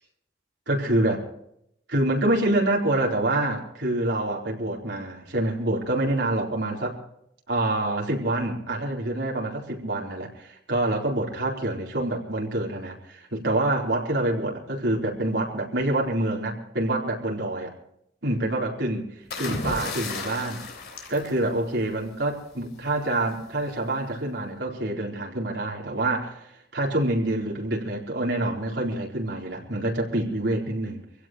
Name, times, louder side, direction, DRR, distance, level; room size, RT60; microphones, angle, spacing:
voice 1, 0.7-1.3 1.9-7.0 7.5-17.7 18.2-19.1 19.4-20.6 21.1-31.0, right 1 dB, 75° right, -1 dB, 4.2 m, -26 dB
sound 1, 19.3-22.1 23.3-23.6, left 3 dB, 55° left, 3.5 m, -34 dB
25.0 x 16.5 x 3.1 m, 0.75 s
head